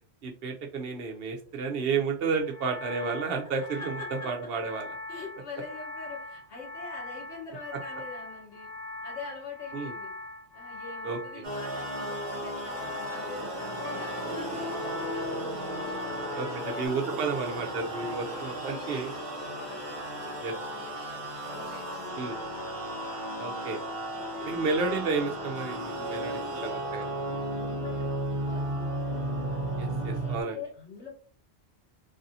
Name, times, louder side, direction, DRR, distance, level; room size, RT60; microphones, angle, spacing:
voice 1, 0.2-3.9 4.2-4.9 9.7-9.9 11.0-11.4 16.3-16.5 16.8-19.1 20.4-20.5 22.2-22.4 23.4-23.8 24.4-27.0 29.8-30.6, right 4 dB, 65° right, 2 dB, 0.8 m, -31 dB
sound 1, 2.4-16.9, left 2 dB, 30° left, 0.5 m, -41 dB
voice 2, 5.1-8.7 9.0-10.1 10.5-15.8 16.3-17.3 17.9-22.5 23.1-24.6 25.9-29.3 29.9-31.2, left 4 dB, 90° left, -2 dB, 1.6 m, -45 dB
sound 2, 11.4-30.4, right 1 dB, 35° right, 0.7 m, -35 dB
sound 3, 13.8-20.3 20.7-21.4, left 2 dB, 65° left, 1.0 m, -42 dB
3.3 x 2.6 x 2.7 m, 0.41 s
omnidirectional pair, 1.1 m